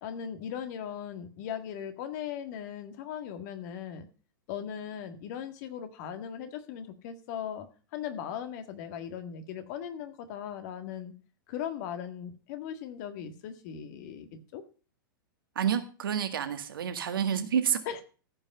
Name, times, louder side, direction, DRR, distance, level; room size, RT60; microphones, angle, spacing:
voice 1, 0.0-4.1 4.5-7.7 7.9-11.1 11.5-14.6 17.9-18.0, left 9 dB, 50° left, 9 dB, 1.7 m, -38 dB
voice 2, 15.6-17.8, right 8 dB, 70° right, 8 dB, 1.8 m, -29 dB
14.5 x 5.6 x 6.6 m, 0.38 s
hypercardioid pair, 105°, 12 cm